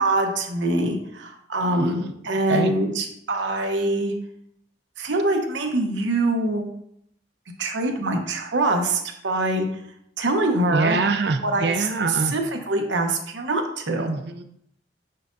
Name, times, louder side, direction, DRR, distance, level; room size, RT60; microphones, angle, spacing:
voice 1, 0.0-4.1 5.0-6.7 7.6-9.7 10.2-11.0 11.4-14.1, right 2 dB, 85° right, 3 dB, 0.9 m, -24 dB
voice 2, 1.6-2.1 2.5-2.7 10.7-12.3 14.0-14.4, right 3 dB, 65° right, 8 dB, 0.5 m, -25 dB
6.4 x 5.7 x 2.6 m, 0.73 s
head